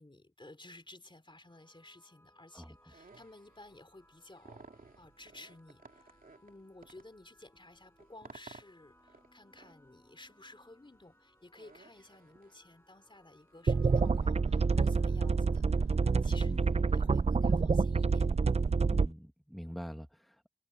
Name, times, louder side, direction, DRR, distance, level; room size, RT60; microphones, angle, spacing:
voice 1, 0.0-18.3, left 2 dB, 35° left, 3.9 m, -55 dB
sound 1, 0.7-17.7, left 1 dB, 15° left, 7.0 m, -67 dB
voice 2, 2.5-2.9 16.4-16.8 18.9-20.5, equal, ahead, 1.7 m, -45 dB
sound 2, 2.6-17.3, right 3 dB, 90° right, 2.9 m, -58 dB
sound 3, 13.7-19.1, right 4 dB, 50° right, 0.4 m, -27 dB
wide cardioid pair, 60°, 14 cm